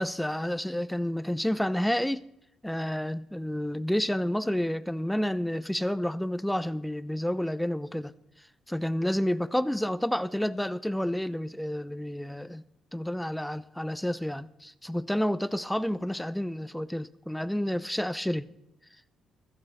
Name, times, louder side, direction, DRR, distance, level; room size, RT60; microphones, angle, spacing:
voice 1, 0.0-2.2 2.6-8.1 8.7-12.6 12.9-18.5, equal, 5° left, 0.7 m, -30 dB
16.0 x 14.5 x 4.3 m
cardioid pair, 90°, 0 cm